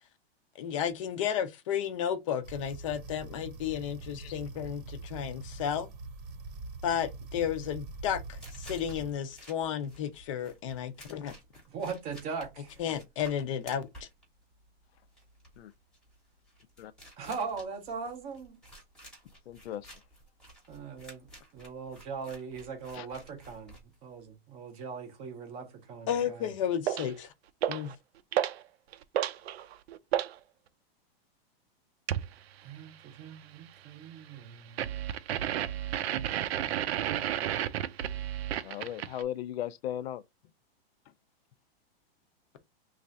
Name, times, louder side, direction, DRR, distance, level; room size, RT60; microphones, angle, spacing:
voice 1, 0.6-5.9 6.8-11.3 12.8-14.1 26.1-27.3 27.7-27.9, left 9 dB, 35° left, 0.5 m, -33 dB
sound 1, 2.4-9.1, right 3 dB, 40° right, 0.8 m, -44 dB
sound 2, 7.1-24.3, equal, ahead, 0.9 m, -53 dB
voice 2, 11.7-12.8 17.2-18.6 20.7-21.3 21.5-26.5 32.6-34.9, right 5 dB, 20° right, 0.5 m, -40 dB
voice 3, 19.5-20.0 22.9-23.1 35.6-35.7 36.4-36.8 38.5-40.2, left 11 dB, 80° left, 0.5 m, -38 dB
sound 3, 26.9-27.1 27.6-27.9 28.3-28.6 28.9-30.3 32.1-32.3 34.8-39.2, right 11 dB, 85° right, 0.5 m, -31 dB
3.2 x 2.4 x 3.9 m
supercardioid pair, 175°, 31 cm